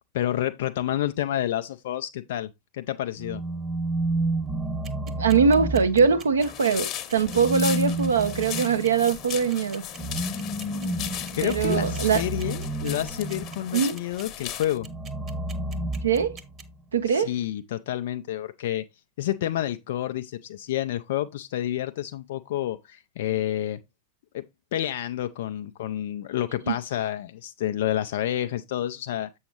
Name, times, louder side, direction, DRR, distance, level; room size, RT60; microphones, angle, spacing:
voice 1, 0.1-3.4 11.4-14.9 17.1-18.8 19.2-23.8 24.3-24.4 24.7-29.3, left 12 dB, 55° left, 0.4 m, -29 dB
sound 1, 3.2-6.5 7.2-13.8 14.8-16.7, right 1 dB, 5° right, 0.9 m, -31 dB
sound 2, 4.8-16.6, right 6 dB, 30° right, 1.1 m, -45 dB
voice 2, 5.2-9.8 11.4-12.2 13.7-14.0 16.0-16.4 16.9-17.3 26.7-26.8, right 6 dB, 70° right, 0.8 m, -22 dB
sound 3, 6.4-14.8, left 11 dB, 35° left, 1.0 m, -37 dB
7.8 x 6.3 x 2.9 m
figure-of-eight pair, 90°, 0 cm